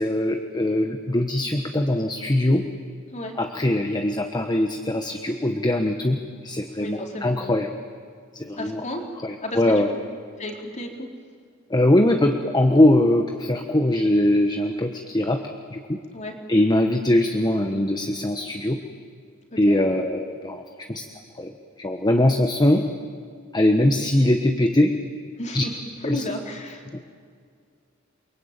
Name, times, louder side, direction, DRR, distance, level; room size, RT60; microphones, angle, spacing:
voice 1, 0.0-2.7 3.4-7.7 8.3-8.8 9.2-9.9 11.7-15.4 15.7-16.0 16.5-18.8 19.6-21.0 21.3-21.5 21.8-22.9 23.5-24.9 25.5-25.6 26.1-26.2 26.9-27.0, left 1 dB, 20° left, 5 dB, 1.3 m, -21 dB
voice 2, 6.8-7.3 8.6-9.0 9.4-9.8 10.4-11.1 16.1-16.3 19.5-19.8 25.4-25.7 26.0-26.8, left 1 dB, 35° left, 2 dB, 3.8 m, -33 dB
29.0 x 23.0 x 9.0 m, 2.2 s
head